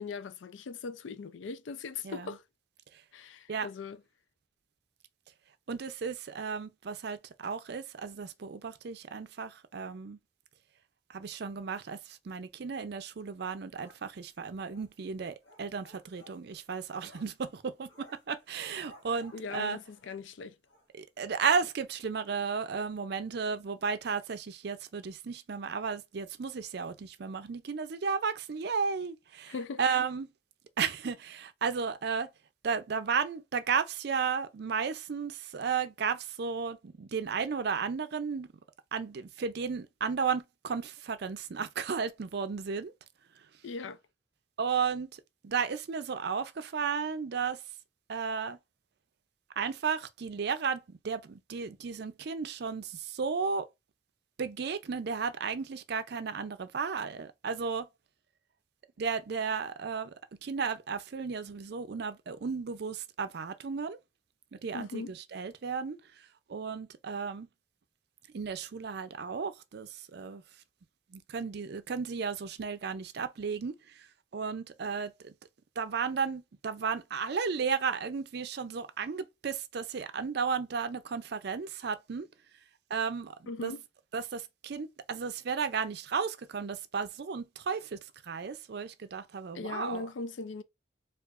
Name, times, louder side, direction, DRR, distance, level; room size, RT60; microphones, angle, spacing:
voice 1, 0.0-2.4 3.1-4.0 19.3-20.6 29.5-29.8 43.6-44.0 64.7-65.1 83.5-83.8 89.5-90.6, left 4 dB, 80° left, 0.4 m, -39 dB
voice 2, 2.0-2.4 2.9-3.0 3.5-3.7 5.7-10.2 11.1-19.8 20.9-30.3 30.8-32.3 32.6-38.5 38.9-42.9 44.6-47.6 48.1-48.6 49.6-53.7 54.4-57.9 59.0-60.1 60.4-64.0 64.6-67.5 68.3-70.4 71.1-74.1 74.3-75.3 75.8-82.3 82.9-83.7 84.1-90.0, right 5 dB, 55° right, 0.4 m, -34 dB
sound 1, 13.8-20.3 20.7-20.9 21.2-21.3 21.6-21.8, equal, 60° left, 1.1 m, -58 dB
4.6 x 2.4 x 2.4 m
head